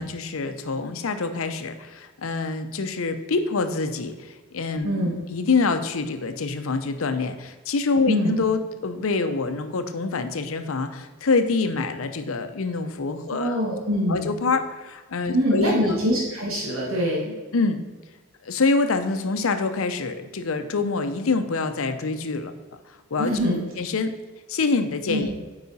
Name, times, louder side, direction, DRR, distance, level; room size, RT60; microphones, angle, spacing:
voice 1, 0.0-13.6 14.1-15.9 17.5-17.8 18.4-22.5 23.1-24.1 24.5-25.3, left 4 dB, 75° left, 9 dB, 0.6 m, -26 dB
voice 2, 4.8-5.2 8.1-8.3 13.3-14.3 15.3-17.4 23.2-23.6 25.1-25.3, equal, 80° right, -4 dB, 1.6 m, -24 dB
8.5 x 4.8 x 4.1 m, 1.3 s
head